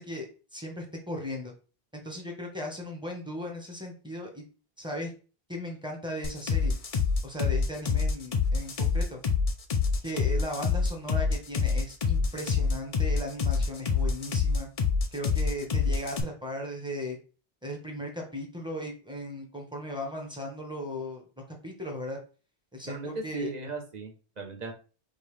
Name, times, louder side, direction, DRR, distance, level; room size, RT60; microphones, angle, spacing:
voice 1, 0.0-1.5 1.9-4.4 4.8-5.1 5.5-6.8 7.2-9.2 10.0-14.7 15.1-17.2 17.6-21.2 21.6-22.2 22.7-23.5, left 1 dB, 5° right, 0 dB, 1.0 m, -37 dB
sound 1, 6.2-16.2, left 5 dB, 45° left, 0.5 m, -26 dB
voice 2, 22.8-24.7, right 2 dB, 40° right, 1 dB, 0.9 m, -37 dB
5.2 x 2.6 x 3.2 m, 0.35 s
omnidirectional pair, 1.2 m